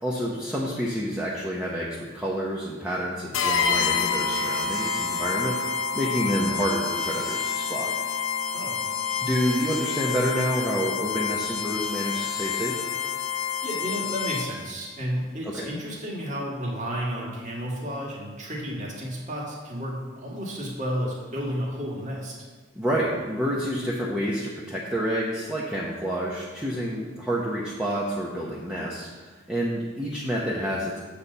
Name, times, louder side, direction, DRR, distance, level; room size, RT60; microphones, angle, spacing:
voice 1, 0.0-7.9 9.2-12.7 15.4-15.7 22.7-31.0, equal, 5° right, -6 dB, 0.8 m, -28 dB
sound 1, 3.3-14.7, left 6 dB, 80° left, 0.7 m, -28 dB
voice 2, 8.5-8.8 13.6-22.3, equal, 35° right, -3 dB, 1.8 m, -32 dB
7.9 x 4.2 x 6.7 m, 1.4 s
head